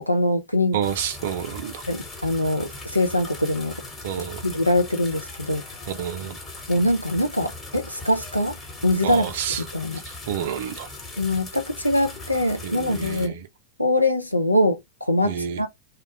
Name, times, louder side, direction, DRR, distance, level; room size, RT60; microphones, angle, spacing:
voice 1, 0.0-0.8 1.9-3.7 4.4-5.6 6.7-9.2 9.7-10.0 11.2-13.3 13.8-15.7, left 1 dB, 90° left, 0.4 m, -23 dB
voice 2, 0.7-1.8 4.0-4.4 5.9-6.4 9.0-9.6 9.9-10.9 12.6-13.5 15.2-15.6, right 9 dB, 55° right, 0.4 m, -29 dB
sound 1, 0.8-13.3, left 2 dB, 20° left, 1.0 m, -39 dB
2.3 x 2.1 x 2.8 m
figure-of-eight pair, 90°, 0 cm